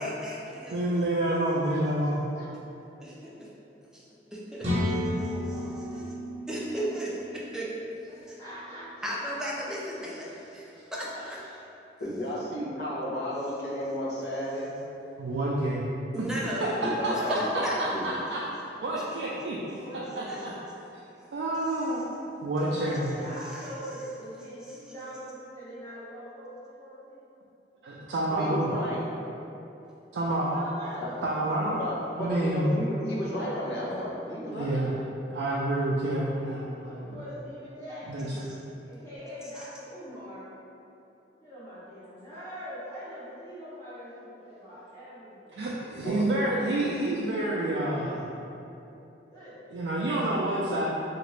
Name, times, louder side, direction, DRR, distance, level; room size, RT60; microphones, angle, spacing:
voice 1, 0.0-0.8 3.0-3.5 3.9-4.0 4.3-4.7 6.5-7.7 8.3-8.4 9.0-11.4 16.1-16.7 17.3-17.8 23.5-23.7, equal, 5° right, -6 dB, 0.4 m, -34 dB
voice 2, 0.7-2.2 15.2-15.9 16.2-16.3 16.6-18.5 18.8-19.8 20.2-20.5 21.3-23.2 27.8-28.7 30.1-30.6 31.2-31.8 32.2-32.8 34.5-35.0 35.3-37.2 38.1-38.3 45.6-48.3 49.7-50.9, right 1 dB, 85° right, -6 dB, 0.4 m, -28 dB
voice 3, 4.4-6.1 6.7-7.2 8.1-9.4 19.8-20.5 22.6-27.3 30.5-31.7 36.8-38.4 38.8-40.5 41.4-45.6 49.3-49.8, equal, 20° left, -13 dB, 1.1 m, -43 dB
sound 1, 4.6-8.4, left 1 dB, 35° right, 0.7 m, -32 dB
voice 4, 12.0-14.7 16.8-18.1 28.3-29.0 31.0-31.1 31.7-34.8 46.0-46.9, equal, 65° left, -6 dB, 0.7 m, -33 dB
2.9 x 2.5 x 3.0 m, 2.9 s
head